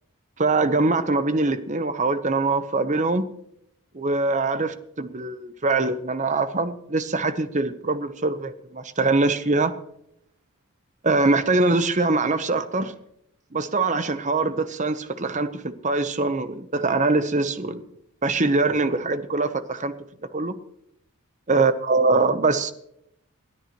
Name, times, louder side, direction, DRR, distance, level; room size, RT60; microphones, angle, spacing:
voice 1, 0.4-3.3 3.9-9.7 11.0-12.9 13.5-17.8 18.2-19.9 20.3-20.5 21.5-22.7, right 3 dB, 35° right, 11 dB, 0.9 m, -23 dB
28.5 x 10.0 x 3.1 m, 0.77 s
head